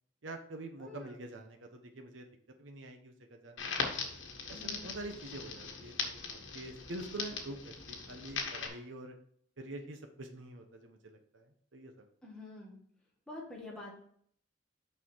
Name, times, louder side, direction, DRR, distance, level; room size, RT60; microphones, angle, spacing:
voice 1, 0.2-2.3 2.6-3.9 4.5-9.1 9.6-12.1, right 1 dB, 80° right, 4 dB, 1.0 m, -46 dB
voice 2, 0.8-1.2 4.5-4.9 12.2-12.8 13.3-13.9, left 2 dB, 5° left, -3 dB, 1.9 m, -47 dB
Crackle, 3.6-8.7, left 5 dB, 80° left, 1.5 m, -40 dB
6.4 x 5.7 x 4.6 m, 0.62 s
head